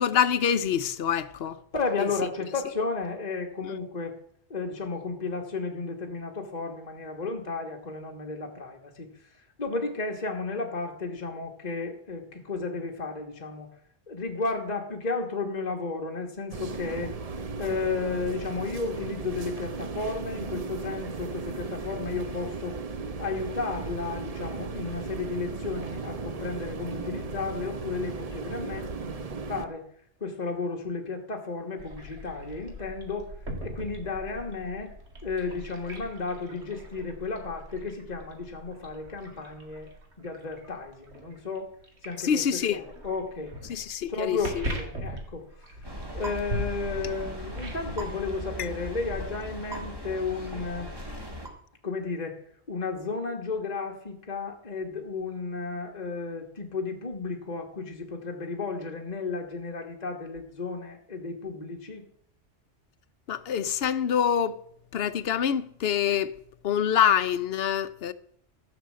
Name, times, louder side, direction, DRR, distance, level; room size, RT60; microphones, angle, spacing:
voice 1, 0.0-1.6 2.0-2.1 42.2-42.8 43.7-44.4 48.6-48.7 63.3-64.6 64.9-66.3 66.6-68.1, left 8 dB, 60° left, 0.9 m, -25 dB
voice 2, 1.7-4.1 4.5-13.7 14.1-17.1 17.6-22.8 23.2-29.8 30.2-33.3 33.6-34.9 35.2-39.9 40.2-41.7 42.0-43.6 44.1-50.9 51.8-52.4 52.7-62.0, left 4 dB, 35° left, 1.4 m, -33 dB
sound 1, 16.5-29.6, right 4 dB, 35° right, 0.7 m, -36 dB
sound 2, 31.8-48.1, equal, 60° right, 2.3 m, -40 dB
sound 3, 45.8-51.5, equal, 20° right, 2.2 m, -38 dB
14.0 x 6.3 x 7.5 m
omnidirectional pair, 1.3 m